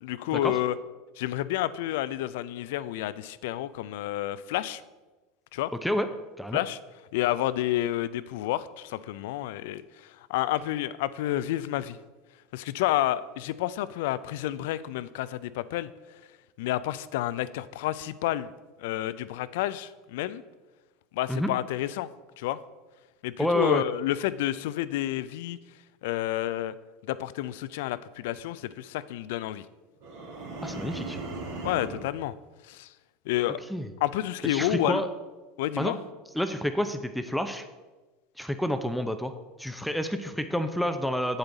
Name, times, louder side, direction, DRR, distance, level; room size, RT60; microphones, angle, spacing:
voice 1, 0.0-0.7 1.2-4.8 5.5-5.7 6.5-6.8 7.1-12.0 12.5-15.9 16.6-18.5 18.8-20.4 21.1-22.1 22.4-22.6 23.2-25.6 26.0-26.7 27.1-29.7 31.6-32.3 32.7-32.9 33.3-33.6 34.0-35.0 35.6-36.0, left 14 dB, 65° left, 16 dB, 0.4 m, -30 dB
voice 2, 23.4-23.8 30.6-31.2 33.7-33.9 34.4-35.1 35.8-36.0 36.3-37.6 38.4-39.3 39.6-41.4, equal, ahead, 8 dB, 0.6 m, -28 dB
sound 1, 30.0-32.1, right 2 dB, 70° right, 2.2 m, -37 dB
8.0 x 8.0 x 3.9 m, 1.2 s
hypercardioid pair, 80°, 0 cm